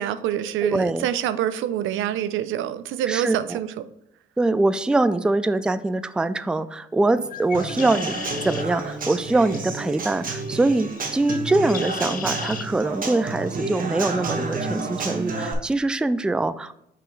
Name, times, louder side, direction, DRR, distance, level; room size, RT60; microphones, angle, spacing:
voice 1, 0.0-3.9, right 11 dB, 80° right, 13 dB, 0.5 m, -26 dB
voice 2, 0.6-1.1 3.1-3.6 4.4-16.7, right 2 dB, 5° right, 13 dB, 0.3 m, -23 dB
Bird, 7.2-12.7, left 7 dB, 45° left, 0.6 m, -38 dB
Human voice / Acoustic guitar / Drum, 7.5-15.5, right 3 dB, 45° right, 1.3 m, -30 dB
5.6 x 4.9 x 3.9 m, 0.76 s
cardioid pair, 90°, 20 cm